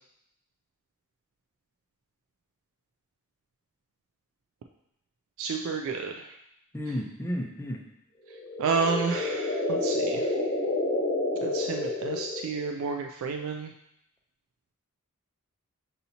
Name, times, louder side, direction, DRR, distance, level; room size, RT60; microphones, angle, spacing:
voice 1, 5.4-6.3 8.6-10.3 11.4-13.7, right 5 dB, 65° right, 4 dB, 0.3 m, -30 dB
voice 2, 6.7-7.8, equal, 10° left, 0 dB, 0.5 m, -32 dB
sound 1, 8.3-12.7, left 2 dB, 45° left, 1.2 m, -29 dB
6.7 x 2.8 x 2.7 m, 0.79 s
head